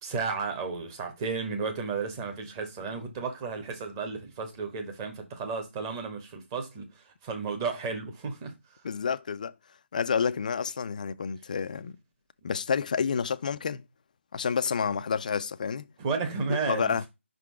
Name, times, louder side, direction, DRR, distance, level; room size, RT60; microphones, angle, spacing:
voice 1, 0.0-8.8 16.0-17.0, right 4 dB, 20° right, 1.1 m, -33 dB
voice 2, 8.8-9.5 9.9-12.0 12.4-13.8 14.3-15.8 16.5-17.0, left 6 dB, 35° left, 0.4 m, -29 dB
5.7 x 3.8 x 4.6 m
figure-of-eight pair, 160°, 7 cm